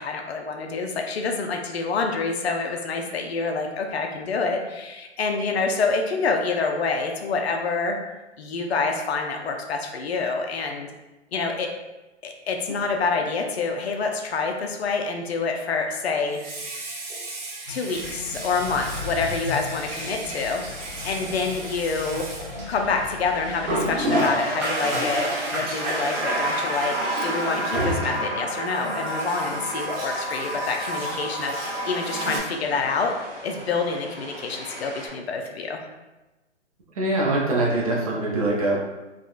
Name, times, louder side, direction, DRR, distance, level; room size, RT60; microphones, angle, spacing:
voice 1, 0.0-8.0 8.4-10.9 11.3-11.7 12.2-16.4 17.7-20.6 21.0-22.4 22.7-27.0 27.2-33.1 33.4-35.8, left 4 dB, 60° left, 3 dB, 0.5 m, -27 dB
Water tap faucet, 12.7-12.8 16.2-23.1 23.6-32.4, right 1 dB, 85° right, 1.0 m, -29 dB
sound 1, 17.9-24.1, left 4 dB, 35° left, 1.4 m, -40 dB
sound 2, 20.3-35.1, right 1 dB, 10° right, 0.9 m, -43 dB
voice 2, 37.0-38.8, right 2 dB, 30° right, -3 dB, 0.5 m, -23 dB
3.5 x 2.2 x 2.4 m, 1.1 s
hypercardioid pair, 150°, 35 cm